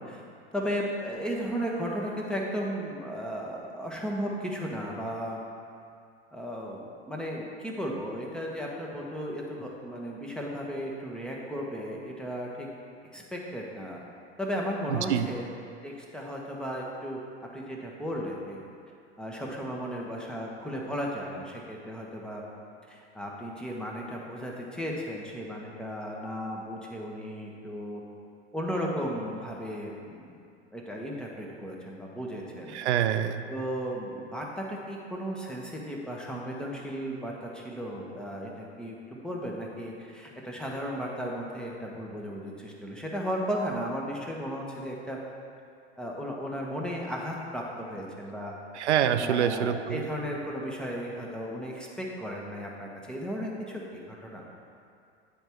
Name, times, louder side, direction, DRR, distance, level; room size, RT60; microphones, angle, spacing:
voice 1, 0.5-5.4 6.3-12.7 13.1-14.0 14.4-15.5 15.8-17.2 17.5-18.6 19.2-22.4 22.9-28.0 28.5-30.3 30.7-32.8 33.5-45.2 46.0-48.5 49.2-54.4, equal, ahead, -2 dB, 1.0 m, -35 dB
voice 2, 14.9-15.3 32.7-33.5 48.7-50.1, right 9 dB, 75° right, 10 dB, 0.5 m, -26 dB
9.2 x 3.6 x 4.5 m, 2.4 s
hypercardioid pair, 90°, 35 cm